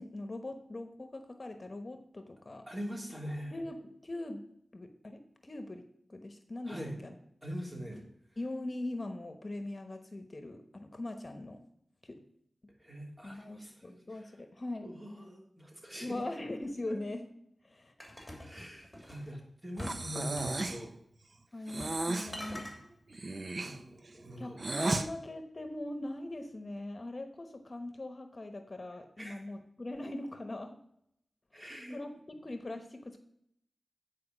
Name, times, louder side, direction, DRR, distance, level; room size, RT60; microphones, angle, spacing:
voice 1, 0.0-2.7 3.5-4.4 4.7-7.2 8.4-11.6 12.0-12.2 13.2-14.9 16.0-17.3 17.6-18.1 21.5-22.7 24.4-30.8 31.5-32.1 32.4-33.2, left 1 dB, 45° left, 7 dB, 1.1 m, -41 dB
voice 2, 2.7-3.5 6.7-7.0 7.4-8.0 12.8-14.3 14.8-16.2 16.9-17.0 18.4-20.9 21.6-21.7 23.6-24.6 29.2-29.4 31.5-32.0, equal, 30° right, -1 dB, 3.1 m, -43 dB
sound 1, 18.0-19.3 19.8-20.8 21.7-22.0 22.3-22.8, left 1 dB, 5° left, 2.9 m, -44 dB
Breathing, 19.8-20.9 21.7-22.3 23.1-25.1, right 2 dB, 55° right, 0.7 m, -34 dB
9.6 x 4.7 x 6.0 m, 0.73 s
cardioid pair, 45°, 0 cm